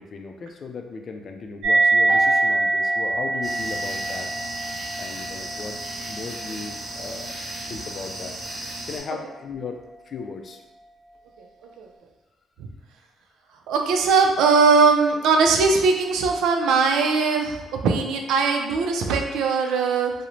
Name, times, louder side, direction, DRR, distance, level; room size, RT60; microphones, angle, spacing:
voice 1, 0.0-4.3 5.0-5.8 6.1-7.3 7.7-8.3 8.9-9.8 10.1-10.6 17.0-17.1, left 4 dB, 50° left, 4 dB, 0.3 m, -36 dB
sound 1, 1.6-8.5, right 2 dB, 65° right, 0.8 m, -25 dB
sound 2, 2.1-6.3, right 2 dB, 25° left, 0.8 m, -35 dB
sound 3, 3.4-9.0, right 1 dB, 45° right, 0.6 m, -35 dB
voice 2, 13.7-17.6 17.8-20.1, right 4 dB, 85° right, 3 dB, 0.3 m, -20 dB
2.5 x 2.0 x 3.0 m, 1.1 s
cardioid pair, 90°, 0 cm